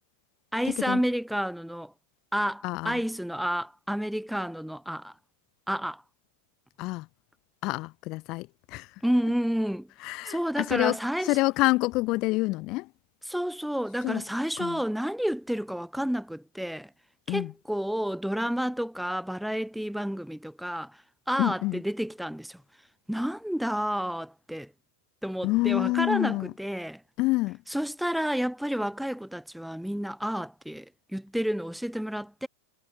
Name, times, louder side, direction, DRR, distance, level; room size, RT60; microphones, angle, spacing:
voice 1, 0.5-1.9 2.3-5.1 5.7-6.0 9.0-9.9 10.3-11.4 13.3-16.9 17.3-21.0 21.3-22.6 23.1-24.7 25.2-27.0 27.7-32.5, equal, ahead, 0.7 m, -30 dB
voice 2, 2.6-3.0 6.8-7.1 7.6-9.0 10.0-12.9 14.0-14.2 14.6-14.8 17.3-17.5 21.4-21.8 25.4-26.5 27.2-27.6, left 21 dB, 40° left, 0.5 m, -27 dB
figure-of-eight pair, 90°, 0 cm